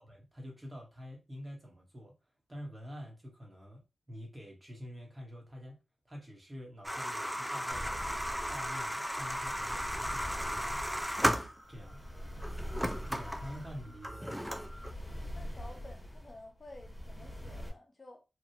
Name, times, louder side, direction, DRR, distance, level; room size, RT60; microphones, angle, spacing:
voice 1, 0.0-2.2 2.5-5.8 6.0-8.1 8.5-10.8 11.7-12.0 13.1-14.5, equal, 25° right, 1.2 m, -47 dB
sound 1, 6.8-11.9 12.4-14.9, equal, 5° right, 0.3 m, -35 dB
sound 2, 7.7-17.7, equal, 10° left, 1.3 m, -44 dB
voice 2, 15.3-18.2, left 2 dB, 35° left, 0.6 m, -52 dB
3.0 x 2.4 x 2.8 m
wide cardioid pair, 100°, 0 cm